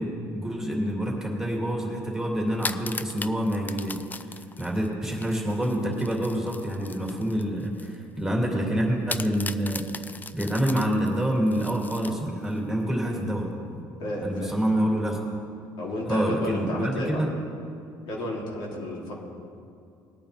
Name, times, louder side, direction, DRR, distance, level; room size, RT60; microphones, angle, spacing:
voice 1, 0.0-9.8 10.3-13.8 14.2-15.2 16.1-17.3, equal, 5° right, -2 dB, 2.8 m, -27 dB
sound 1, 2.5-8.0 8.3-8.4 9.1-12.6, left 4 dB, 20° left, 0.4 m, -38 dB
voice 2, 14.0-14.5 15.8-17.2 18.0-19.1, left 1 dB, 65° left, -3 dB, 2.9 m, -31 dB
20.0 x 8.9 x 3.4 m, 2.5 s
supercardioid pair, 85°, 9 cm